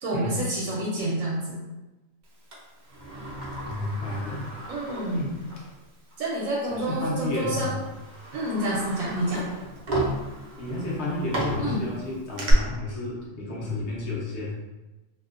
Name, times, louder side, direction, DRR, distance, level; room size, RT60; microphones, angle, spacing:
voice 1, 0.0-1.5 4.7-5.3 6.2-7.8 8.3-9.4 11.6-11.9, right 1 dB, 80° right, -6 dB, 1.0 m, -28 dB
Sliding door, 2.5-5.7 6.1-6.2 7.1-7.3 7.8-12.5, right 1 dB, 60° right, 0.5 m, -34 dB
voice 2, 3.7-4.5 5.1-5.3 6.6-7.8 10.6-14.5, left 2 dB, 65° left, -4 dB, 0.9 m, -31 dB
2.6 x 2.1 x 2.4 m, 1.1 s
omnidirectional pair, 1.4 m